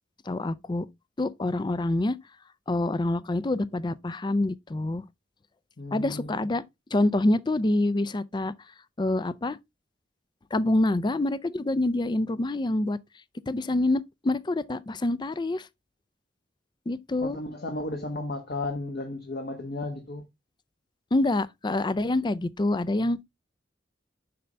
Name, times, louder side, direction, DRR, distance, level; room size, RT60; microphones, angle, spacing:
voice 1, 0.3-0.9 1.2-2.2 2.7-5.0 5.9-6.6 6.9-8.5 9.0-9.6 10.5-13.0 13.5-15.7 16.9-17.4 21.1-23.2, left 2 dB, 25° left, 0.4 m, -26 dB
voice 2, 5.8-6.5 17.2-20.2, left 2 dB, 60° left, 1.3 m, -34 dB
6.8 x 5.3 x 3.4 m
head